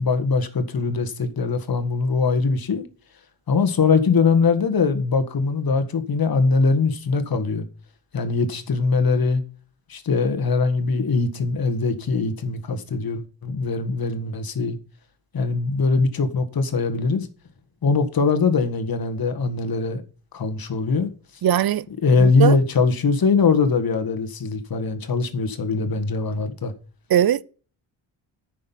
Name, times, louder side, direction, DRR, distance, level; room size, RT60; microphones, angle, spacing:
voice 1, 0.0-2.8 3.5-7.7 8.1-9.4 9.9-14.8 15.3-17.3 17.8-20.0 20.3-21.1 22.0-26.7, left 4 dB, 45° left, 1.7 m, -21 dB
voice 2, 21.4-21.9 22.2-22.6 27.1-27.4, right 10 dB, 50° right, 0.6 m, -19 dB
9.7 x 6.4 x 5.7 m
cardioid pair, 105°, 50 cm